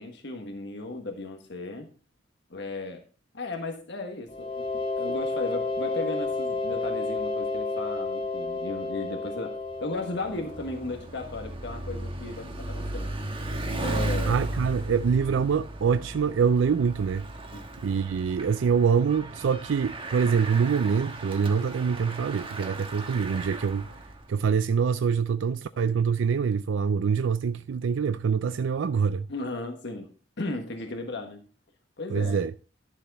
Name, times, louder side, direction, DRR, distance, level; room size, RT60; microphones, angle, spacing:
voice 1, 0.0-1.9 2.5-3.0 3.3-4.7 5.0-13.1 13.8-14.4 17.5-17.6 29.3-30.1 30.4-31.4 32.0-32.4, left 2 dB, 65° left, 1.4 m, -35 dB
sound 1, 4.3-10.9, left 3 dB, 30° left, 2.0 m, -31 dB
Bicycle, 9.6-24.3, right 1 dB, 30° right, 1.3 m, -36 dB
voice 2, 14.3-17.3 17.8-24.0 24.3-29.3 32.1-32.5, right 6 dB, 75° right, 0.4 m, -25 dB
11.5 x 7.2 x 4.0 m
head